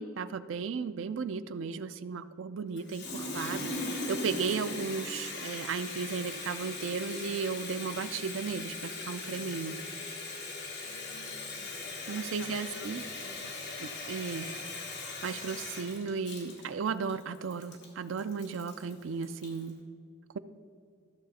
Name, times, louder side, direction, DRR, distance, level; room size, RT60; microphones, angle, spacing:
voice 1, 0.0-9.8 12.1-13.0 13.8-14.5 15.0-19.8, right 5 dB, 70° right, 13 dB, 0.4 m, -35 dB
Water tap faucet, 2.8-19.7, left 2 dB, 55° left, 1.6 m, -39 dB
voice 2, 10.8-12.9 13.2-13.6, left 4 dB, 90° left, 8 dB, 0.6 m, -52 dB
13.5 x 6.6 x 4.1 m, 2.2 s
head